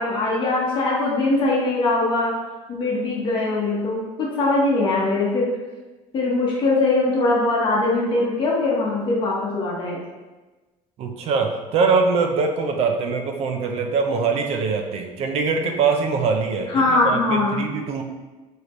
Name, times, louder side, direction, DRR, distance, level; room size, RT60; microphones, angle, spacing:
voice 1, 0.0-2.3 2.7-5.5 6.1-10.0 16.7-17.7, left 2 dB, 35° left, -4 dB, 1.5 m, -21 dB
voice 2, 11.0-18.0, right 4 dB, 50° right, 4 dB, 0.7 m, -23 dB
6.8 x 4.5 x 3.2 m, 1.2 s
cardioid pair, 170°, 13 cm